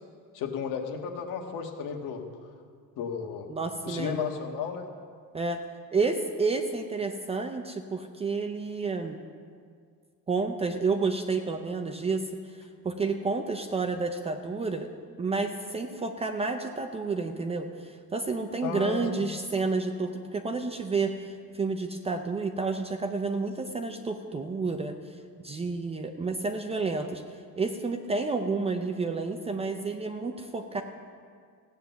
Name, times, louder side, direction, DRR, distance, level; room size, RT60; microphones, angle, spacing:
voice 1, 0.3-2.2 3.0-3.5 3.8-4.9 18.6-19.3, left 6 dB, 60° left, 3 dB, 1.6 m, -33 dB
voice 2, 3.5-4.3 5.3-5.6 5.9-9.2 10.3-12.2 12.8-14.9 15.2-24.9 25.4-27.2 27.6-30.8, right 4 dB, 15° right, 6 dB, 0.5 m, -30 dB
16.0 x 9.2 x 6.9 m, 2.1 s
cardioid pair, 165°, 36 cm